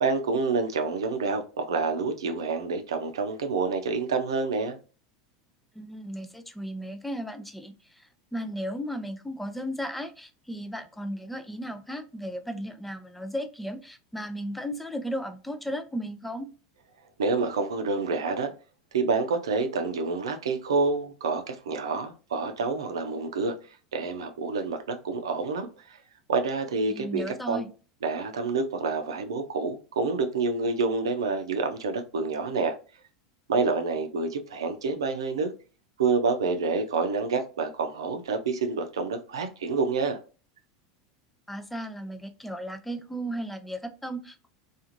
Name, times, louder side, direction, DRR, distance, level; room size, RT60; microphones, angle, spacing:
voice 1, 0.0-4.8 17.2-18.5 18.9-23.5 23.9-25.7 26.3-27.6 28.0-32.8 33.5-35.5 36.0-40.2, right 4 dB, 90° right, 0.5 m, -28 dB
voice 2, 5.8-16.5 26.9-27.7 41.5-44.5, equal, 5° left, 0.4 m, -35 dB
2.4 x 2.4 x 2.9 m
hypercardioid pair, 105°, 2 cm